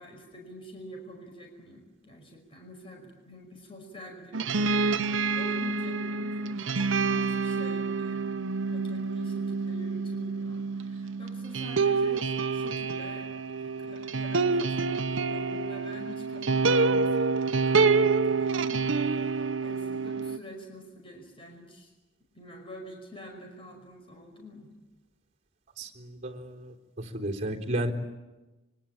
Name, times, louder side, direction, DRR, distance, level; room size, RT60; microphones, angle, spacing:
voice 1, 0.0-8.4 8.7-13.3 13.5-21.9 22.3-24.7, equal, 30° left, 2 dB, 5.6 m, -46 dB
sound 1, 4.3-20.4, right 4 dB, 85° right, 0.9 m, -27 dB
voice 2, 25.8-27.9, right 1 dB, 40° right, 1 dB, 3.8 m, -33 dB
26.0 x 24.0 x 8.9 m, 1.1 s
head